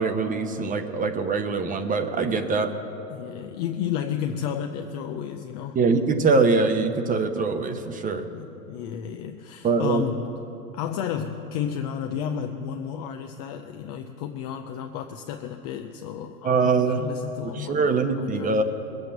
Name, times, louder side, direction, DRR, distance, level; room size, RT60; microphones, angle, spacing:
voice 1, 0.0-2.7 5.7-8.2 9.6-10.1 16.4-17.0 17.4-18.6, right 4 dB, 15° right, 8 dB, 0.8 m, -23 dB
voice 2, 2.3-2.7 3.1-5.8 8.1-10.3 10.7-18.6, left 8 dB, 25° left, 5 dB, 0.4 m, -32 dB
20.0 x 8.0 x 7.1 m, 3.0 s
hypercardioid pair, 110°, 50 cm